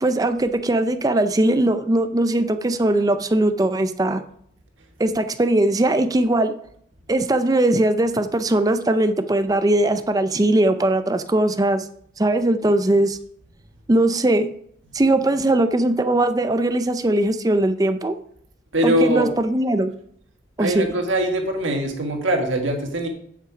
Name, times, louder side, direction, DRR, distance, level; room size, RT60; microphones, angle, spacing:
voice 1, 0.0-4.2 5.0-6.5 7.1-11.9 12.2-13.2 13.9-14.5 14.9-18.1 18.8-19.9 20.6-20.9, right 1 dB, 20° right, 9 dB, 0.4 m, -20 dB
voice 2, 18.7-19.3 20.6-23.1, right 1 dB, 75° right, 3 dB, 1.6 m, -22 dB
9.9 x 5.8 x 4.8 m, 0.67 s
head